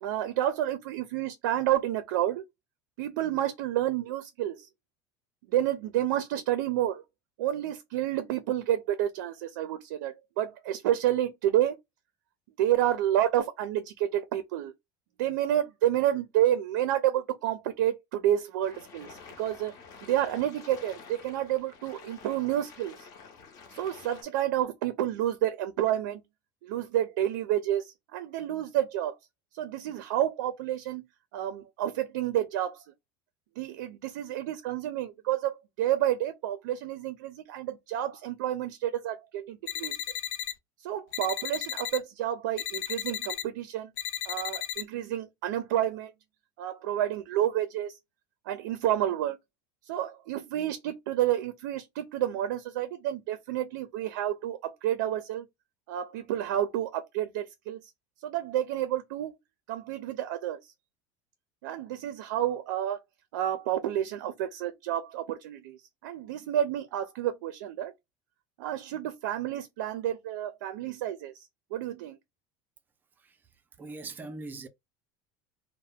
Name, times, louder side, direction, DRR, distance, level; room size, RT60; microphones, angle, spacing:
voice 1, 0.0-2.4 3.0-4.7 5.5-7.0 7.4-11.8 12.6-14.7 15.2-19.7 20.0-23.0 23.7-26.2 26.6-29.1 29.5-31.0 31.3-32.8 33.6-40.0 40.8-43.9 44.3-46.1 46.6-48.0 48.5-49.4 49.9-55.4 55.9-57.8 58.2-59.3 59.7-60.6 61.6-63.0 63.3-65.8 66.0-67.9 68.6-71.3 71.7-72.2, right 12 dB, 90° right, 0.4 m, -29 dB
sound 1, 18.6-24.2, left 5 dB, 40° left, 0.7 m, -49 dB
sound 2, 39.7-40.5 41.1-42.0 42.6-43.4 44.0-44.8, left 10 dB, 75° left, 0.4 m, -34 dB
voice 2, 73.8-74.7, right 3 dB, 20° right, 0.4 m, -41 dB
2.2 x 2.0 x 3.4 m
supercardioid pair, 145°, 10 cm